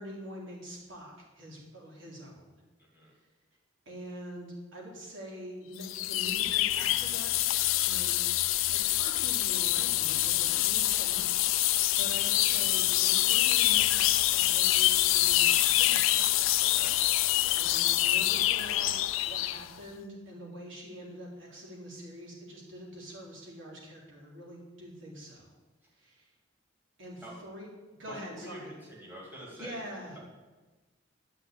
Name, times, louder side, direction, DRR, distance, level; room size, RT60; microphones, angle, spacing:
voice 1, 0.0-2.6 3.9-7.3 7.9-8.2 8.7-16.3 17.5-18.9 19.2-25.6 26.0-26.3 27.0-27.7 28.0-28.7 29.6-30.2, equal, 70° right, -2 dB, 3.7 m, -45 dB
sound 1, 5.8-19.7, left 15 dB, 85° left, 0.5 m, -26 dB
voice 2, 28.3-29.8, equal, 10° right, -5 dB, 3.6 m, -46 dB
12.0 x 6.0 x 9.3 m, 1.2 s
head